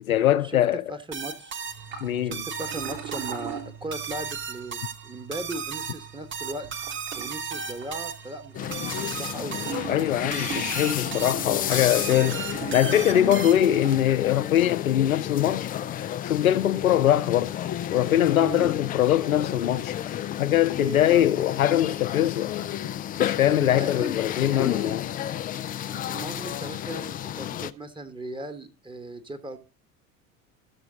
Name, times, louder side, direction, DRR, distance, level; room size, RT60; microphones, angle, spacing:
voice 1, 0.1-0.8 2.0-2.4 9.9-12.4 12.7-15.7 16.2-17.5 17.9-20.0 20.4-22.5 23.2-25.1, left 11 dB, 80° left, 0.5 m, -22 dB
voice 2, 0.9-1.6 2.2-6.7 7.1-9.6 18.4-18.7 20.8-21.3 23.5-24.1 24.5-24.9 25.9-29.6, right 2 dB, 10° right, 1.3 m, -37 dB
sound 1, 1.1-13.9, right 6 dB, 30° right, 1.1 m, -36 dB
sound 2, 1.7-14.0, right 7 dB, 60° right, 4.1 m, -41 dB
sound 3, 8.5-27.7, left 11 dB, 20° left, 0.4 m, -32 dB
14.0 x 6.9 x 3.9 m
figure-of-eight pair, 65°, 41 cm